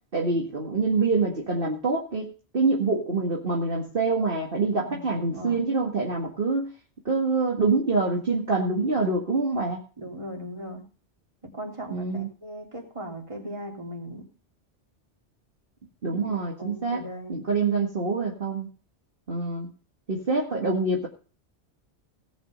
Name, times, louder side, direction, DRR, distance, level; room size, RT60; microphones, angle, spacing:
voice 1, 0.1-6.7 7.1-9.8 11.9-12.3 16.0-17.0 17.3-18.7 19.3-19.7 20.1-21.1, right 3 dB, 50° right, -1 dB, 2.0 m, -25 dB
voice 2, 4.8-5.6 10.0-10.8 11.5-14.2 16.1-17.4, equal, 25° right, 0 dB, 3.3 m, -38 dB
18.0 x 6.2 x 5.4 m, 0.37 s
omnidirectional pair, 1.2 m